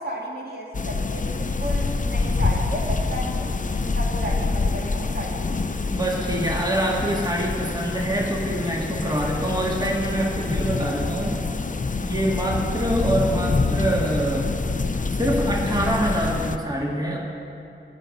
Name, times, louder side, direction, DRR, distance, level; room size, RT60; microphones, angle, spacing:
voice 1, 0.0-5.6, equal, 55° right, -3 dB, 2.1 m, -33 dB
sound 1, 0.7-16.6, left 3 dB, 40° left, 0.6 m, -26 dB
voice 2, 5.9-11.4 12.0-14.5 15.1-17.2, right 1 dB, 20° right, -2 dB, 1.9 m, -25 dB
18.0 x 6.5 x 5.4 m, 2.7 s
cardioid pair, 40°, 20 cm